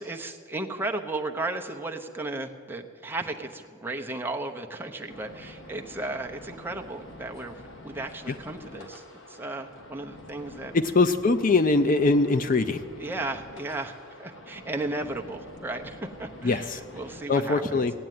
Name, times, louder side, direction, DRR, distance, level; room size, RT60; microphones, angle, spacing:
voice 1, 0.0-10.7 13.0-17.8, right 2 dB, 10° right, 2 dB, 0.8 m, -35 dB
sound 1, 5.1-17.2, left 1 dB, 65° left, 1.4 m, -47 dB
voice 2, 10.7-12.8 16.4-16.8 17.3-17.9, left 3 dB, 40° left, 10 dB, 0.4 m, -22 dB
17.0 x 8.7 x 9.3 m, 2.1 s
head